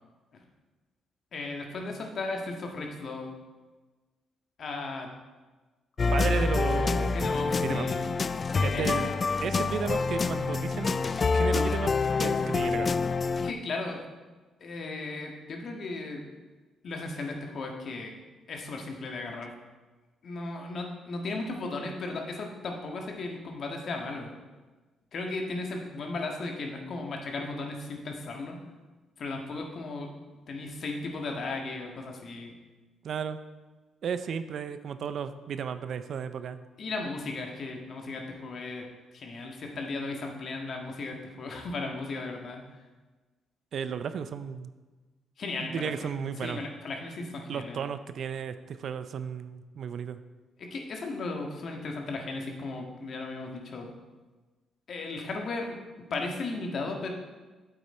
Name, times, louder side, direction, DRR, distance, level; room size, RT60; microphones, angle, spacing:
voice 1, 1.3-3.3 4.6-5.1 7.1-8.0 8.7-8.8 13.4-14.0 14.6-16.2 16.8-18.1 18.5-19.5 20.2-24.3 25.1-28.6 29.2-30.1 30.5-32.5 36.8-38.8 39.1-42.6 45.4-46.1 46.4-47.8 50.6-53.9 54.9-55.8 56.1-57.1, left 3 dB, 55° left, 2 dB, 1.6 m, -36 dB
sound 1, 6.0-13.5, left 4 dB, 35° left, 0.3 m, -27 dB
voice 2, 6.1-7.3 7.6-7.9 8.6-9.1 9.4-11.0 11.3-11.9 12.2-12.9 33.0-33.4 34.0-36.6 43.7-44.7 45.6-46.6 47.5-50.2, right 7 dB, 60° right, 11 dB, 0.5 m, -34 dB
8.3 x 8.1 x 4.3 m, 1.3 s
cardioid pair, 90°, 0 cm